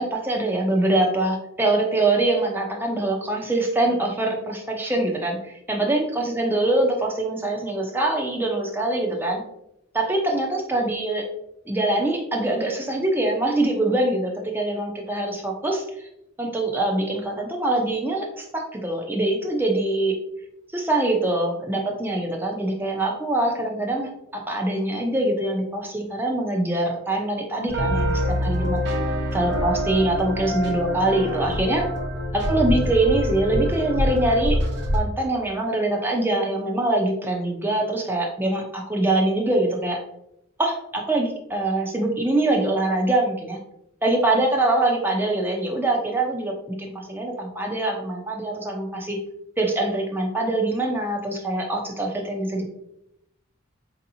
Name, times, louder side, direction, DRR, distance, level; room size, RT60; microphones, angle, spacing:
voice 1, 0.0-9.4 9.9-11.3 11.7-16.1 16.4-20.2 20.7-28.8 29.3-31.9 32.3-34.6 34.9-40.0 40.6-43.6 44.0-49.2 49.6-52.7, right 2 dB, 10° right, 1 dB, 0.5 m, -24 dB
sound 1, 27.7-35.0, equal, 55° right, 0.8 m, -25 dB
4.5 x 2.8 x 2.6 m, 0.80 s
head